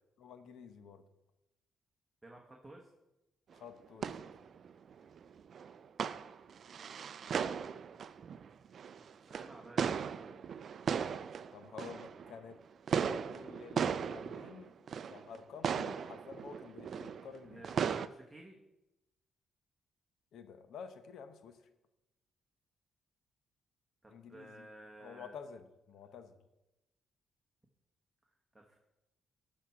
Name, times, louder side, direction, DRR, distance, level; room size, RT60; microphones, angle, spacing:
voice 1, 0.2-1.0 3.5-4.1 11.5-12.6 13.0-14.7 15.1-17.6 20.3-21.6 24.1-24.6 25.0-26.4, left 6 dB, 70° left, 9 dB, 0.9 m, -50 dB
voice 2, 2.2-2.9 9.0-10.4 17.4-18.6 24.0-25.4 28.2-28.8, right 1 dB, 10° right, 0 dB, 1.3 m, -54 dB
sound 1, 3.5-3.6 3.8-12.5 12.9-15.4 15.6-18.1, right 7 dB, 55° right, 0.4 m, -37 dB
12.0 x 4.3 x 5.9 m, 0.95 s
cardioid pair, 90°, 0 cm